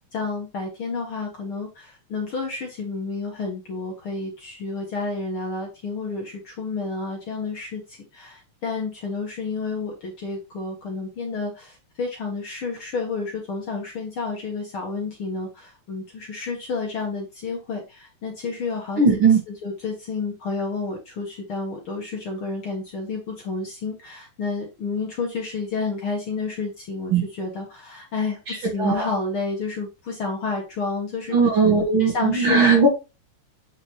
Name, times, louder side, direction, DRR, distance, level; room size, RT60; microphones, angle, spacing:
voice 1, 0.1-19.2 19.5-31.4 32.0-32.6, left 4 dB, 50° left, 0 dB, 1.9 m, -30 dB
voice 2, 19.0-19.4 27.1-27.2 28.5-29.1 31.3-32.9, right 4 dB, 45° right, 0 dB, 2.0 m, -18 dB
8.3 x 5.0 x 3.0 m, 0.27 s
omnidirectional pair, 3.6 m